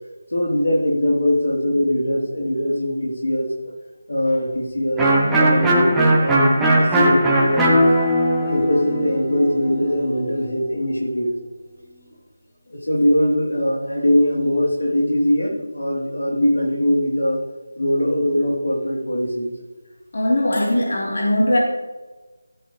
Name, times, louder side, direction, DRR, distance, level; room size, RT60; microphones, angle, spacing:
voice 1, 0.3-3.5 4.1-7.9 8.4-11.3 12.7-17.4 17.7-19.5, left 1 dB, 85° left, -3 dB, 3.4 m, -21 dB
Electric guitar, 5.0-10.6, right 1 dB, 5° right, 0.9 m, -18 dB
voice 2, 20.1-21.6, left 1 dB, 60° left, -3 dB, 3.6 m, -19 dB
14.5 x 8.3 x 3.3 m, 1.2 s
figure-of-eight pair, 170°, 0 cm